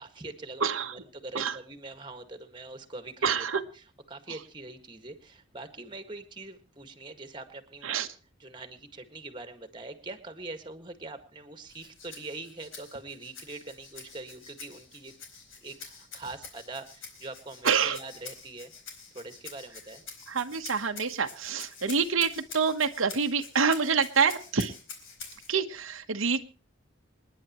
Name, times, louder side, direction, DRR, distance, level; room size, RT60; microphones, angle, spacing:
voice 1, 0.0-0.6 0.9-3.5 4.1-7.9 8.4-15.1 15.6-18.7 19.1-20.0, right 2 dB, 20° right, 9 dB, 1.7 m, -43 dB
voice 2, 0.6-1.0 1.3-1.6 3.2-3.6 4.3-4.4 7.8-8.1 17.6-18.0 20.3-24.7 25.5-26.4, right 6 dB, 80° right, 6 dB, 1.1 m, -27 dB
Rattle (instrument), 11.7-25.5, left 5 dB, 75° left, 4.3 m, -47 dB
28.0 x 10.5 x 3.0 m, 0.35 s
head